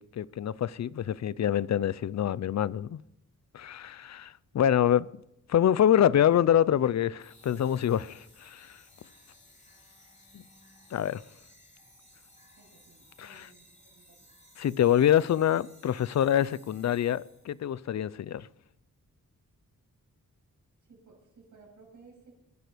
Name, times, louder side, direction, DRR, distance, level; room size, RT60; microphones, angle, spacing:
voice 1, 0.0-3.0 3.5-5.1 5.5-8.8 10.3-10.4 10.9-11.2 13.2-13.5 14.6-18.5, left 10 dB, 55° left, 0.5 m, -26 dB
sound 1, 7.2-17.7, left 1 dB, 20° left, 3.0 m, -58 dB
voice 2, 12.6-14.2 20.9-22.4, right 4 dB, 65° right, 7.3 m, -57 dB
21.5 x 10.5 x 5.0 m
wide cardioid pair, 160°, 33 cm